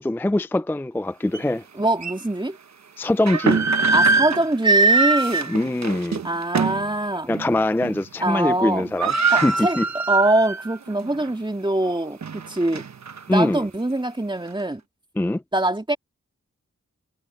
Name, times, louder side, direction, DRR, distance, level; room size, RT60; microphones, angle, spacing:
voice 1, 0.0-1.6 3.0-3.7 5.5-6.2 7.3-9.8 13.3-13.6 15.2-15.4, left 1 dB, 5° left, 0.4 m, -23 dB
sound 1, 1.3-1.4 2.0-2.1 3.0-6.9 7.3-7.5 7.8-8.2 8.5-8.6 8.8-10.7 11.1-11.2 11.9-13.2, right 4 dB, 65° right, 1.2 m, -22 dB
voice 2, 1.7-2.6 3.9-5.5 6.2-7.3 8.2-8.9 9.3-12.8 13.3-14.8 15.5-16.0, right 1 dB, 15° right, 2.5 m, -23 dB
cardioid pair, 50°, 30 cm